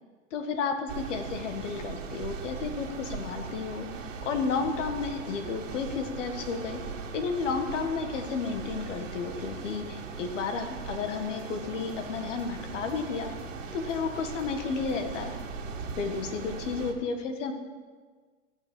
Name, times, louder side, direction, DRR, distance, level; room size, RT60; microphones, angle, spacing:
voice 1, 0.3-3.8 4.3-6.8 7.1-13.3 13.7-15.3 16.0-17.5, left 5 dB, 65° left, 6 dB, 1.7 m, -32 dB
sound 1, 0.9-16.9, right 5 dB, 70° right, 2.0 m, -39 dB
sound 2, 11.2-16.3, left 2 dB, 40° left, 4.1 m, -49 dB
15.0 x 5.8 x 7.6 m, 1.5 s
hypercardioid pair, 120°, 39 cm